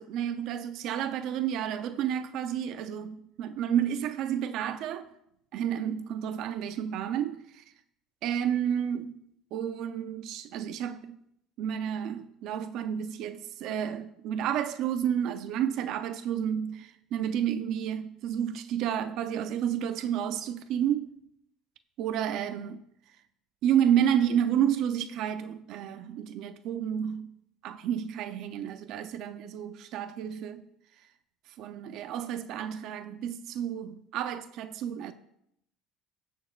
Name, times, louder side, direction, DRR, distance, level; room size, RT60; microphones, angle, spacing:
voice 1, 0.0-5.1 5.5-7.6 8.2-9.1 9.5-11.2 11.6-21.1 22.0-22.8 23.6-27.3 27.6-30.7 31.6-35.1, right 9 dB, 60° right, 0.6 m, -30 dB
19.5 x 6.5 x 2.4 m
cardioid pair, 135°, 0 cm